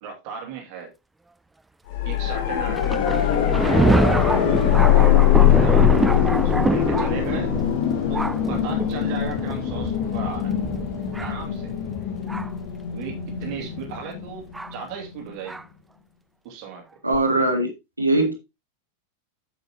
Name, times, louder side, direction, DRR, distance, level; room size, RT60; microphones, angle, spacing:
voice 1, 0.0-0.9 2.0-7.5 8.1-8.2 8.5-10.5 11.2-11.7 12.9-15.6 16.4-16.8, right 6 dB, 45° right, 2.6 m, -36 dB
sound 1, 1.9-14.8 17.1-17.2, left 11 dB, 50° left, 1.5 m, -22 dB
Thunder, 2.7-12.7 13.4-13.5 14.5-14.7 15.5-15.6, right 2 dB, 5° right, 0.4 m, -26 dB
voice 2, 17.0-17.7 18.0-18.3, right 1 dB, 85° right, 1.9 m, -20 dB
7.8 x 7.6 x 3.0 m
figure-of-eight pair, 90°, 0 cm